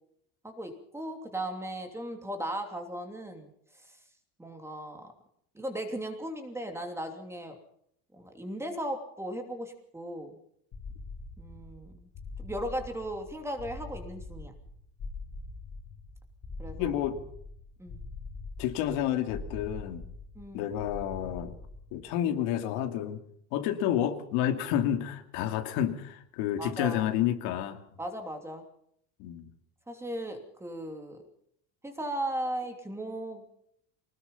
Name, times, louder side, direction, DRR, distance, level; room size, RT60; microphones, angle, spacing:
voice 1, 0.4-3.5 3.8-4.0 4.4-5.1 5.5-7.6 8.1-10.4 11.4-12.1 12.4-14.5 16.6-16.9 17.8-18.0 20.3-20.7 26.6-27.0 28.0-28.6 29.9-31.2 31.8-33.4, right 1 dB, 5° right, 5 dB, 2.9 m, -37 dB
sound 1, 10.7-22.1, left 3 dB, 35° left, 3.6 m, -43 dB
voice 2, 16.8-17.2 18.6-20.0 20.5-21.5 21.9-23.2 23.5-27.8 29.2-29.5, left 11 dB, 80° left, 6 dB, 2.8 m, -30 dB
25.0 x 19.5 x 5.6 m, 0.70 s
cardioid pair, 160°, 38 cm